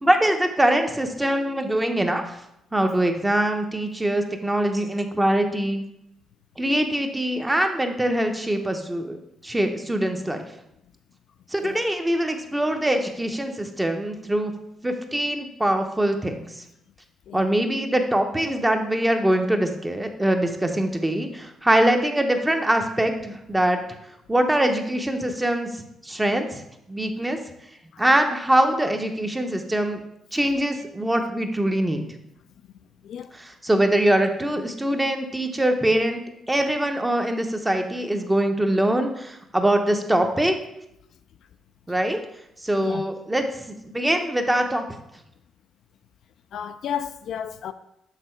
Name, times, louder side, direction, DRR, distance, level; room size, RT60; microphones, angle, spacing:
voice 1, 0.0-2.2 2.7-5.8 6.6-9.2 9.4-10.4 11.5-14.5 14.8-16.5 17.3-23.8 24.3-25.7 26.0-26.6 26.9-27.4 28.0-30.0 30.3-32.0 33.3-36.2 36.5-40.6 41.9-42.2 42.6-43.4 43.8-44.8, right 1 dB, 10° right, 0.7 m, -23 dB
voice 2, 46.5-47.7, left 9 dB, 70° left, 0.3 m, -32 dB
6.7 x 3.7 x 4.4 m
cardioid pair, 90°, 0 cm